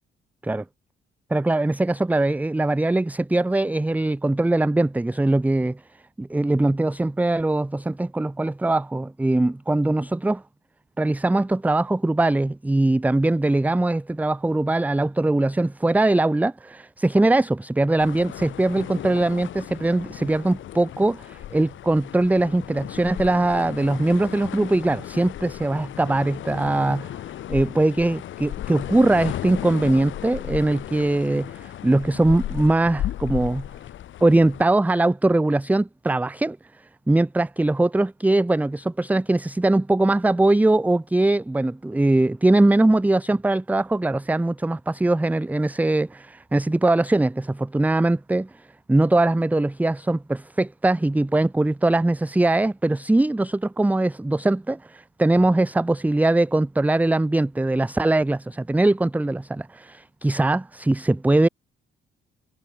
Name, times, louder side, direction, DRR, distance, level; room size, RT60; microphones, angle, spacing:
voice 1, 1.3-5.8 6.2-10.4 11.0-27.2 27.5-33.7 34.2-36.6 37.1-61.5, right 2 dB, 10° right, 0.6 m, -21 dB
sound 1, 18.0-34.6, left 12 dB, 75° left, 2.7 m, -35 dB
cardioid pair, 90°, 20 cm